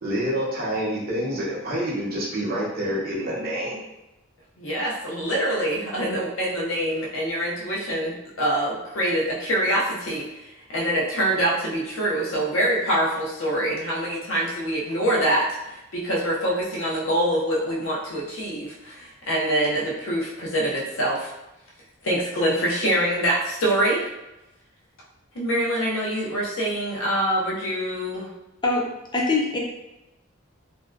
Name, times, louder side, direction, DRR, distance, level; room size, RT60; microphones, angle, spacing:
voice 1, 0.0-3.8, equal, 45° right, -4 dB, 0.7 m, -27 dB
voice 2, 4.6-10.4 10.7-21.3 22.0-24.0 25.3-28.3, right 1 dB, 80° left, -3 dB, 0.7 m, -25 dB
voice 3, 29.1-29.6, left 3 dB, 20° left, -2 dB, 0.4 m, -22 dB
2.6 x 2.1 x 2.4 m, 0.94 s
head